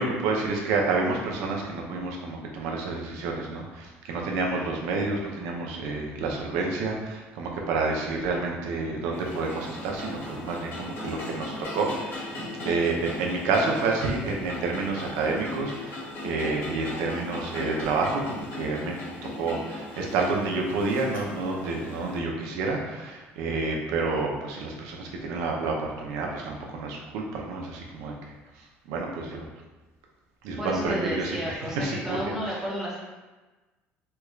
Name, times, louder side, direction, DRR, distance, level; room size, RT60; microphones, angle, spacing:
voice 1, 0.0-12.3 12.6-18.9 19.4-28.1 28.9-29.4 30.4-32.2 32.5-32.6, right 3 dB, 80° right, 0 dB, 0.6 m, -29 dB
sound 1, 9.1-22.2, left 2 dB, 50° left, 1.3 m, -38 dB
voice 2, 30.6-33.0, equal, 10° right, -5 dB, 0.9 m, -32 dB
3.3 x 2.4 x 3.1 m, 1.2 s
cardioid pair, 125°, 5 cm